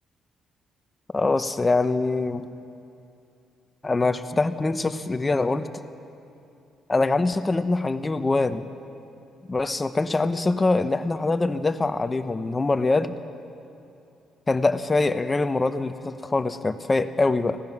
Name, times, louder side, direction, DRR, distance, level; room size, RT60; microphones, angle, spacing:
voice 1, 1.1-2.5 3.8-5.7 6.9-8.7 9.5-13.2 14.5-17.6, left 3 dB, 25° left, 10 dB, 1.0 m, -24 dB
25.0 x 17.5 x 6.1 m, 2.7 s
cardioid pair, 90°, 0 cm